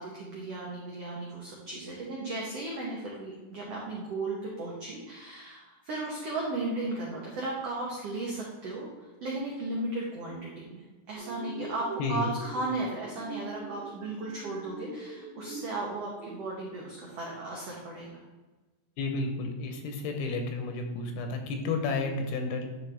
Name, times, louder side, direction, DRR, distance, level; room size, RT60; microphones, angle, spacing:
voice 1, 0.0-8.9 9.2-10.8 11.1-18.2, right 2 dB, 90° right, -3 dB, 1.3 m, -35 dB
sound 1, 11.1-16.3, right 5 dB, 75° right, 1.8 m, -43 dB
voice 2, 12.0-12.3 19.0-22.7, left 3 dB, 85° left, 4 dB, 2.9 m, -31 dB
9.8 x 4.2 x 3.4 m, 1.2 s
omnidirectional pair, 4.4 m